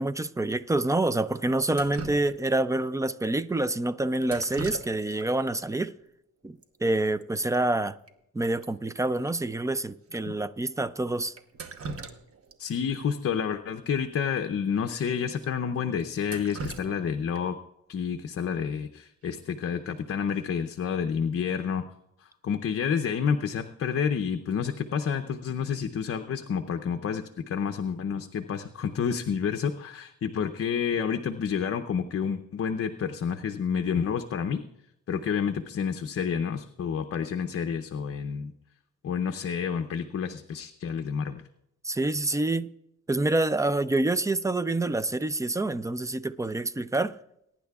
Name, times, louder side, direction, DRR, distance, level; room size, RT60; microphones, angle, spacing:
voice 1, 0.0-5.9 6.4-8.0 8.3-11.3 41.8-42.7 43.1-47.2, right 2 dB, 10° right, 0.3 m, -27 dB
Drip, 1.7-2.7 4.2-5.3 5.6-5.7 6.6-6.7 7.0-7.2 7.5-7.6 8.1-8.2 8.6-8.7 9.3-9.4 10.1-10.2 11.4-12.6 12.9-13.0 14.4-14.5 14.9-15.0 15.4-15.5 16.0-17.6 19.6-19.9 20.3-20.7, right 3 dB, 45° right, 1.0 m, -40 dB
voice 2, 12.6-17.6 17.9-21.8 22.2-34.6 35.1-38.5 39.0-41.4, left 7 dB, 45° left, 0.6 m, -29 dB
22.0 x 10.0 x 2.4 m
cardioid pair, 135°, 31 cm